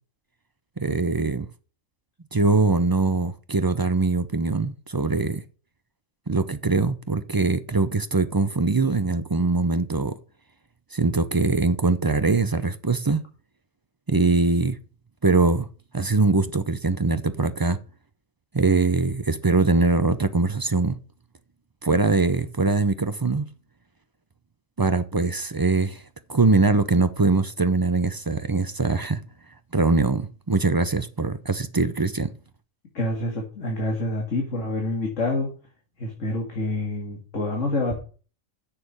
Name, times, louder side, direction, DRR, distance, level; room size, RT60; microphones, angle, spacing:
voice 1, 0.8-1.5 2.3-5.4 6.3-10.1 10.9-13.2 14.1-14.8 15.2-15.7 15.9-17.8 18.5-21.0 21.8-23.5 24.8-26.0 26.3-29.2 29.7-32.3, right 3 dB, 30° right, 0.4 m, -22 dB
voice 2, 32.9-35.5 36.0-38.0, left 2 dB, 70° left, 2.3 m, -27 dB
7.4 x 6.7 x 7.9 m
omnidirectional pair, 1.4 m